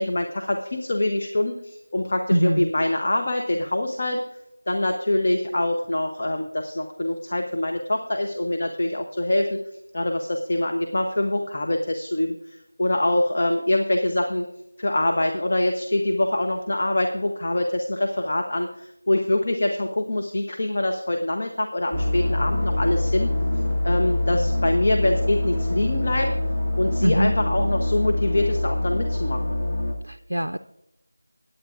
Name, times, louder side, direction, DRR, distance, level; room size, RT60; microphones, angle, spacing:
voice 1, 0.0-4.2 4.7-9.6 9.9-14.5 14.8-23.3 23.8-26.3 26.8-29.6, left 1 dB, 40° left, 3 dB, 0.8 m, -24 dB
voice 2, 2.3-2.7 27.0-27.3 30.0-30.6, equal, 85° right, 7 dB, 0.4 m, -22 dB
sound 1, 21.9-29.9, left 1 dB, 15° left, 1.1 m, -24 dB
18.0 x 8.9 x 2.5 m, 0.85 s
figure-of-eight pair, 170°, 0 cm